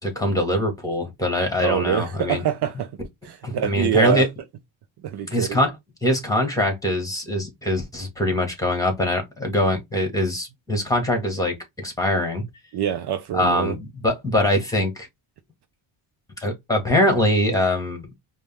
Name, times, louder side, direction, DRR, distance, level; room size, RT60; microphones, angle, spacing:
voice 1, 0.0-2.4 3.4-4.3 5.3-5.7 6.0-12.4 13.3-15.1 16.4-18.0, left 1 dB, 5° left, 1.9 m, -23 dB
voice 2, 1.6-2.9 3.2-4.3 5.0-5.6 12.7-13.8, right 10 dB, 55° right, 0.7 m, -24 dB
5.1 x 2.4 x 3.5 m
cardioid pair, 95°, 48 cm